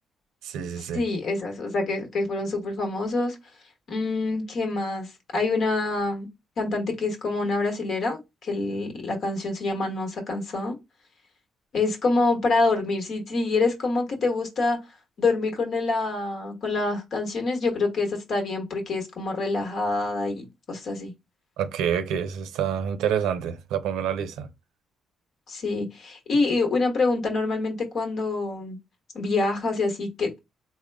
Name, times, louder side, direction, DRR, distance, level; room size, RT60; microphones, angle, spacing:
voice 1, 0.4-1.0 21.6-24.5, right 8 dB, 90° right, 0.5 m, -27 dB
voice 2, 0.9-3.3 3.9-5.1 5.3-6.3 6.6-10.8 11.7-14.8 15.2-21.1 25.5-28.8 29.1-30.4, left 3 dB, 60° left, 1.2 m, -26 dB
3.6 x 2.1 x 3.4 m
cardioid pair, 90°, 0 cm